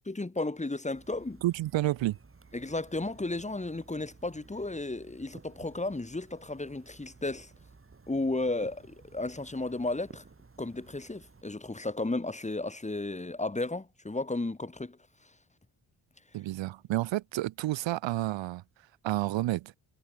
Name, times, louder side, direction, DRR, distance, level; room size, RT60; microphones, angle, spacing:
voice 1, 0.1-1.4 2.5-7.5 8.1-10.2 10.6-15.0, left 2 dB, 15° left, 3.5 m, -34 dB
sound 1, 0.9-11.4, right 4 dB, 30° right, 5.1 m, -55 dB
voice 2, 1.4-2.2 16.3-18.6 19.0-19.7, right 16 dB, 85° right, 0.6 m, -30 dB
cardioid pair, 110°, 44 cm